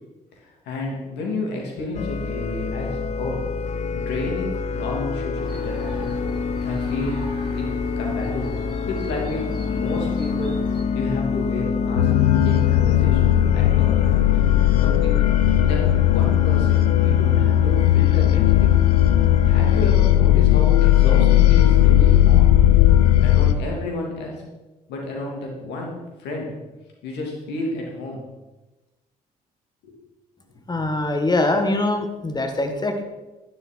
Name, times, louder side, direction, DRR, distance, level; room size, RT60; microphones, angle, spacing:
voice 1, 0.4-3.4 3.8-7.2 7.5-7.7 8.0-8.6 8.9-10.6 10.9-12.1 12.4-14.3 14.8-15.1 15.6-18.7 19.4-22.5 23.2-24.4 24.9-25.9 26.2-26.5 27.0-28.2 29.8-30.0, left 2 dB, 60° left, -1 dB, 3.0 m, -31 dB
sound 1, 1.9-20.0, left 5 dB, 35° left, 0.6 m, -27 dB
sound 2, 5.4-10.8, right 2 dB, 25° right, 3.7 m, -40 dB
sound 3, 12.0-23.5, left 12 dB, 75° left, 0.6 m, -16 dB
voice 2, 30.7-33.0, left 2 dB, 20° left, 5 dB, 1.8 m, -23 dB
11.0 x 10.0 x 4.6 m, 1.1 s
figure-of-eight pair, 45°, 19 cm